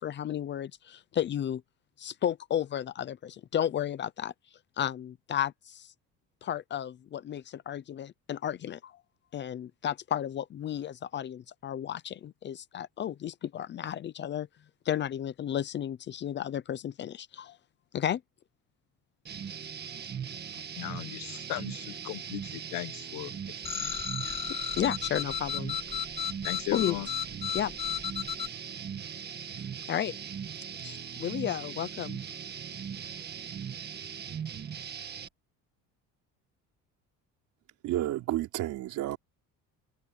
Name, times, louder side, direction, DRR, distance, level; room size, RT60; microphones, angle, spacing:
voice 1, 0.0-1.6 2.0-4.3 4.8-5.9 6.4-9.0 9.3-14.5 14.9-17.6 17.9-18.2 24.5-25.8 26.7-27.0 27.5-27.7 29.9-30.2 30.8-32.2, left 10 dB, 35° left, 0.7 m, -33 dB
sound 1, 19.2-35.3, right 8 dB, 30° right, 1.7 m, -40 dB
voice 2, 20.5-23.3 23.7-24.4 26.4-27.1, left 19 dB, 85° left, 1.2 m, -38 dB
sound 2, 23.6-28.5, left 8 dB, 15° left, 1.2 m, -34 dB
voice 3, 37.8-39.2, right 15 dB, 65° right, 3.7 m, -31 dB
cardioid pair, 165°, 33 cm